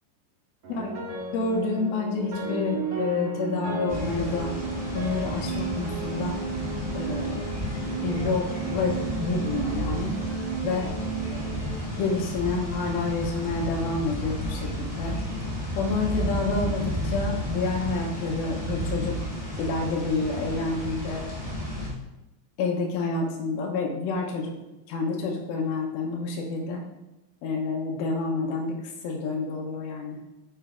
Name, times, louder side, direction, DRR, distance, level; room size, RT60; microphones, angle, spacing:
sound 1, 0.6-12.9, right 4 dB, 60° right, 1.6 m, -34 dB
voice 1, 1.3-4.5 4.9-6.4 6.9-7.5 8.0-10.2 10.6-10.9 11.3-11.5 11.9-15.2 15.7-19.2 19.6-21.3 22.6-24.5 24.9-26.8 27.4-30.2, left 3 dB, 75° left, -1 dB, 2.6 m, -28 dB
sound 2, 3.9-21.9, equal, 5° right, 1.8 m, -32 dB
11.5 x 3.9 x 4.5 m, 0.98 s
omnidirectional pair, 4.9 m